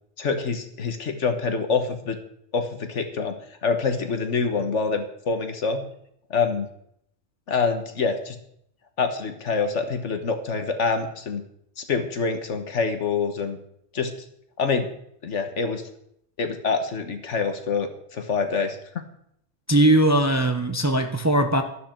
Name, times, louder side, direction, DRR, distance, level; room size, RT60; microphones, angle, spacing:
voice 1, 0.2-2.2 2.5-5.8 6.3-6.7 7.5-8.4 9.0-11.4 11.8-13.6 13.9-14.1 14.6-14.9 15.2-15.8 16.4-19.0, left 4 dB, 60° left, 7 dB, 1.6 m, -26 dB
voice 2, 19.7-21.6, right 1 dB, 15° right, 6 dB, 0.9 m, -19 dB
13.0 x 11.5 x 4.5 m, 0.72 s
omnidirectional pair, 1.4 m